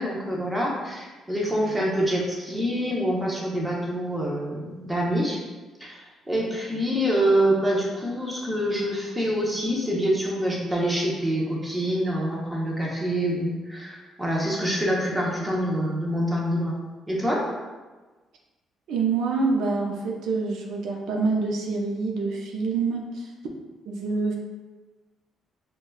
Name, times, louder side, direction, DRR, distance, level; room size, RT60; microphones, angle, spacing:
voice 1, 0.0-5.4 5.8-16.8 17.1-17.4, equal, 5° right, -4 dB, 0.7 m, -26 dB
voice 2, 18.9-23.5 23.9-24.4, right 4 dB, 80° right, 0 dB, 0.4 m, -26 dB
4.7 x 2.2 x 2.3 m, 1.3 s
cardioid pair, 130°, 0 cm